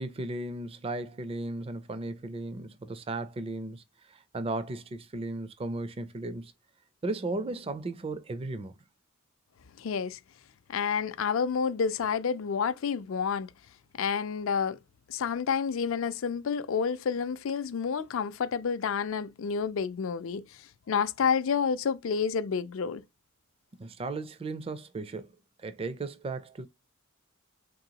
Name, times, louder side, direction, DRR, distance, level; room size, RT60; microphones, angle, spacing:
voice 1, 0.0-3.8 4.1-6.5 7.0-8.8 23.8-25.3 25.6-26.7, right 2 dB, 25° right, 0.4 m, -35 dB
voice 2, 9.8-10.2 10.7-13.5 14.0-14.8 15.1-20.4 20.9-23.0, left 6 dB, 65° left, 0.4 m, -29 dB
3.8 x 3.4 x 2.8 m
head